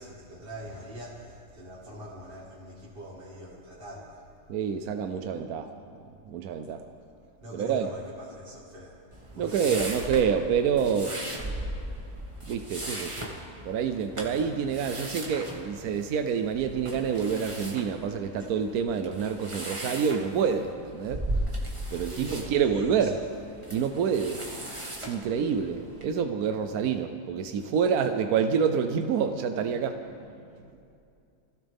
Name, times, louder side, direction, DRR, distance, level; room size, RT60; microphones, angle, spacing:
voice 1, 0.0-4.2 7.4-9.0 9.3-9.8 18.4-18.5 22.1-23.1, equal, 40° right, -6 dB, 2.1 m, -43 dB
voice 2, 4.5-5.7 6.3-6.8 7.5-7.9 9.4-11.2 12.5-13.3 13.6-21.2 21.9-23.2 23.7-24.4 25.0-30.0, right 7 dB, 80° right, 7 dB, 1.2 m, -27 dB
sound 1, 9.1-26.1, right 1 dB, 20° right, 1.7 m, -38 dB
24.5 x 16.0 x 3.5 m, 2.5 s
omnidirectional pair, 1.5 m